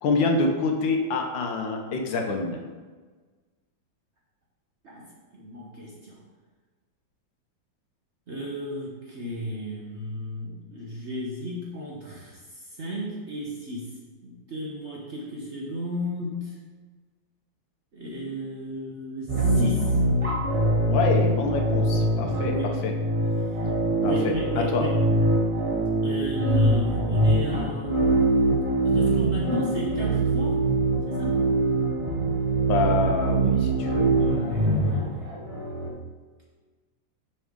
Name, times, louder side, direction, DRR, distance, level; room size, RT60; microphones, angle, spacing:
voice 1, 0.0-2.6 20.9-22.5 22.8-22.9 24.0-24.8 32.6-34.1, left 3 dB, 75° left, 3 dB, 1.5 m, -26 dB
voice 2, 5.3-6.2 8.3-12.4 12.8-13.9 14.2-16.6 17.9-20.0 22.4-22.7 23.5-23.6 24.0-24.9 26.0-30.6 31.1-31.4 34.2-35.2, equal, 45° right, -3 dB, 1.0 m, -33 dB
sound 1, 19.3-35.9, right 2 dB, 30° right, 0.6 m, -23 dB
6.8 x 5.7 x 3.7 m, 1.4 s
omnidirectional pair, 2.1 m